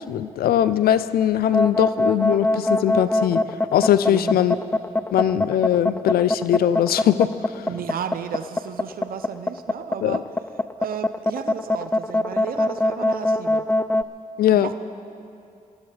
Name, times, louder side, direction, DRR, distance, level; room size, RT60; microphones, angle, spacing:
voice 1, 0.1-3.4 3.7-4.6 5.1-7.3 7.5-7.6 10.0-10.2 14.4-14.8, left 11 dB, 90° left, 14 dB, 0.4 m, -20 dB
sound 1, 1.4-14.0, left 1 dB, 15° left, 0.4 m, -22 dB
voice 2, 4.1-4.4 7.7-10.2 10.8-13.7 14.5-14.8, right 8 dB, 75° right, 10 dB, 0.6 m, -33 dB
22.5 x 14.0 x 3.3 m, 2.6 s
cardioid pair, 50°, 15 cm